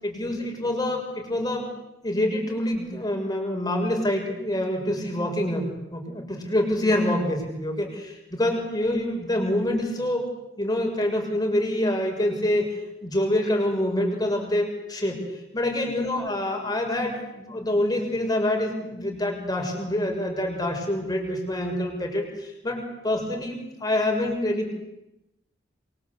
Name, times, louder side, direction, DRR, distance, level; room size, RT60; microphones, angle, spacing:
voice 1, 0.0-1.7 2.0-10.3 10.6-15.2 15.5-24.7, left 1 dB, 20° left, 2 dB, 6.4 m, -26 dB
28.5 x 23.5 x 8.3 m, 0.89 s
head